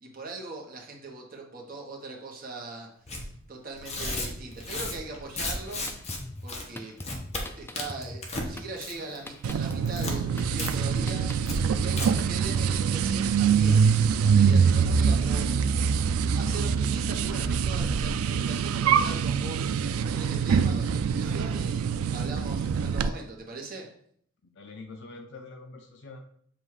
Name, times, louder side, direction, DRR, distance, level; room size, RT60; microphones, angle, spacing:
voice 1, 0.0-5.9 6.4-6.9 7.6-15.5 16.3-23.9, right 3 dB, 45° right, 0 dB, 1.2 m, -41 dB
Tearing, 3.1-3.2 3.8-6.2 6.5-6.6 7.0-7.4 7.8-8.5 8.8-9.2 9.4-10.1 10.6-10.7 11.0-11.1 11.4-11.6 11.9-12.1, left 2 dB, 30° left, 1.0 m, -34 dB
Drum kit, 5.6-12.9, left 1 dB, 10° left, 0.3 m, -42 dB
sound 1, 9.4-23.1, right 6 dB, 85° right, 0.3 m, -24 dB
voice 2, 24.5-26.2, left 3 dB, 55° left, 3 dB, 0.6 m, -44 dB
7.6 x 2.6 x 4.8 m, 0.64 s
head